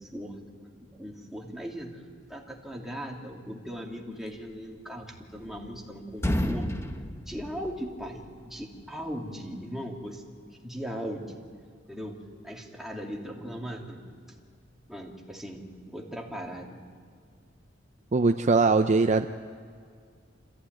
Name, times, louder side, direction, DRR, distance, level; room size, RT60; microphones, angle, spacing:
voice 1, 0.0-2.0 2.3-6.7 7.3-10.2 10.6-11.2 11.9-12.2 12.4-14.0 14.9-16.8, equal, ahead, -1 dB, 2.7 m, -38 dB
sound 1, 5.0-5.8 6.1-8.3, equal, 15° left, 1.1 m, -31 dB
voice 2, 18.1-19.3, right 3 dB, 40° right, 8 dB, 0.5 m, -21 dB
27.5 x 15.0 x 9.4 m, 2.1 s
head